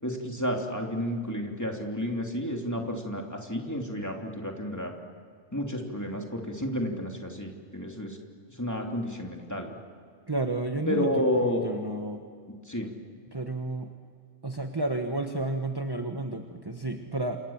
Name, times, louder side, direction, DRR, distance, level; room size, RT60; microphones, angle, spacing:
voice 1, 0.0-4.9 5.5-8.2 8.6-9.8 10.9-11.6 12.7-12.9, equal, 15° left, 1 dB, 3.1 m, -31 dB
voice 2, 10.3-11.1 11.4-12.2 13.3-13.9 14.4-17.4, right 2 dB, 20° right, 4 dB, 1.3 m, -31 dB
28.5 x 28.0 x 7.3 m, 2.1 s
omnidirectional pair, 1.3 m